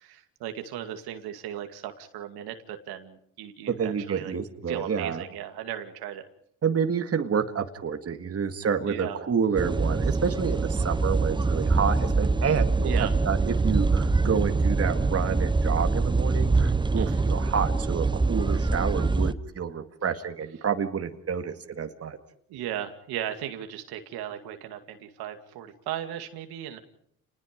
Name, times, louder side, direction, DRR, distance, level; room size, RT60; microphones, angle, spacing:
voice 1, 0.0-4.3 4.7-6.2 8.8-9.2 12.8-13.1 17.0-17.2 22.5-26.8, right 11 dB, 85° right, 6 dB, 2.4 m, -36 dB
voice 2, 3.7-5.2 6.6-22.2, right 6 dB, 40° right, 7 dB, 2.1 m, -29 dB
sound 1, 9.6-19.3, right 3 dB, 15° right, 0.8 m, -24 dB
29.5 x 20.5 x 5.2 m, 0.67 s
cardioid pair, 90°, 37 cm